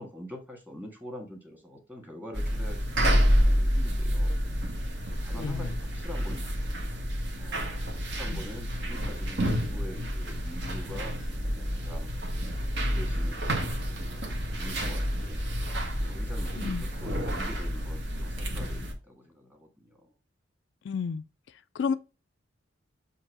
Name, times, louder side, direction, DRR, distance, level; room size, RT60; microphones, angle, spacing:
voice 1, 0.0-4.3 5.1-6.7 7.4-12.1 12.8-13.5 13.9-15.4 16.1-20.1 21.9-22.0, left 1 dB, 10° right, 1.6 m, -45 dB
sound 1, 2.3-18.9, equal, 60° right, 1.5 m, -29 dB
voice 2, 5.3-5.7 8.3-8.4 16.6-16.8 20.8-21.2 21.7-21.9, left 6 dB, 65° left, 0.3 m, -31 dB
7.2 x 2.9 x 4.6 m
head